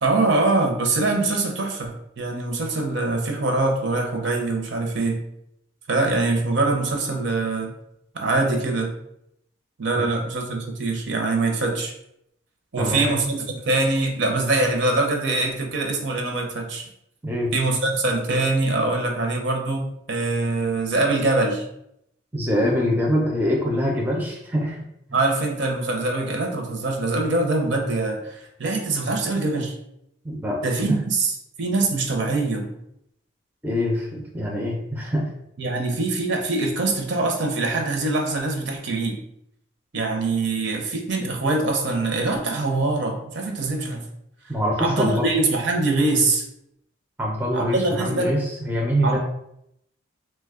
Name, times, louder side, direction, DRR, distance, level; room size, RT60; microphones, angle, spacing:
voice 1, 0.0-5.2 5.9-7.7 8.1-8.9 9.8-11.9 12.7-16.8 17.5-21.6 25.1-29.7 30.6-32.7 35.6-39.2 39.9-44.1 44.8-46.4 47.5-48.3 49.0-49.2, right 2 dB, 60° right, 3 dB, 0.6 m, -23 dB
voice 2, 12.8-13.2 17.2-17.5 22.3-24.8 30.2-30.6 33.6-35.3 44.5-45.2 47.2-49.2, equal, 10° right, -2 dB, 0.4 m, -24 dB
3.0 x 2.2 x 3.5 m, 0.77 s
head